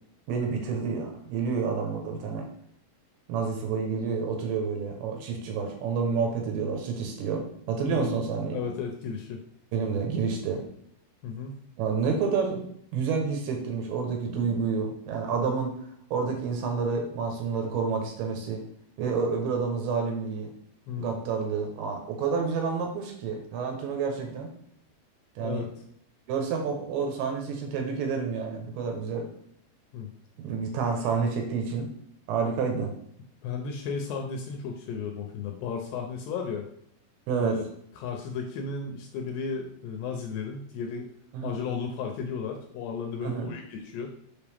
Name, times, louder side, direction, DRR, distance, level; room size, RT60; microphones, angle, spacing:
voice 1, 0.3-2.5 3.3-8.6 9.7-10.6 11.8-12.6 12.9-15.7 16.1-18.6 19.0-20.5 21.0-24.5 25.4-25.7 26.3-29.3 30.4-31.9 32.3-32.9 37.3-37.6 41.3-41.5 43.2-43.5, right 5 dB, 75° right, 3 dB, 3.2 m, -29 dB
voice 2, 7.8-8.2 8.5-9.4 11.2-11.6 20.9-21.2 25.4-25.7 29.9-30.1 33.4-36.6 37.3-37.7 38.0-41.1 41.4-44.1, left 5 dB, 80° left, 2 dB, 2.6 m, -34 dB
7.1 x 5.3 x 3.5 m, 0.68 s
omnidirectional pair, 5.4 m